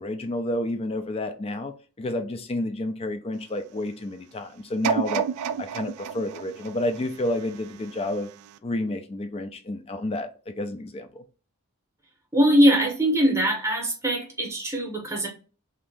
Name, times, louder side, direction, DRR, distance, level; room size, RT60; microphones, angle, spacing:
voice 1, 0.0-5.2 5.6-8.3 8.6-11.2, left 1 dB, 25° left, 0.3 m, -30 dB
sound 1, 4.8-7.9 8.5-8.6, right 7 dB, 90° right, 0.3 m, -30 dB
voice 2, 12.3-15.3, equal, 15° right, 0.8 m, -21 dB
2.8 x 2.6 x 3.3 m
head